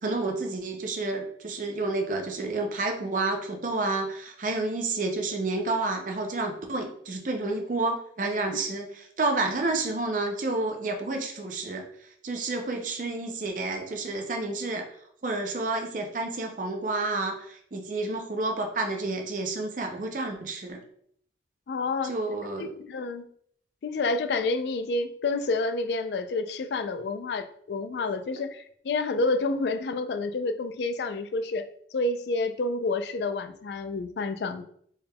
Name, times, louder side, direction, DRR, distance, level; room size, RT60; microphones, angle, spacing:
voice 1, 0.0-11.8 12.2-14.9 15.2-20.8 22.0-22.7, right 2 dB, 45° right, 3 dB, 0.5 m, -30 dB
voice 2, 21.7-22.1 22.6-23.2 23.8-34.6, left 3 dB, 65° left, 10 dB, 0.3 m, -29 dB
4.6 x 3.3 x 2.2 m, 0.63 s
head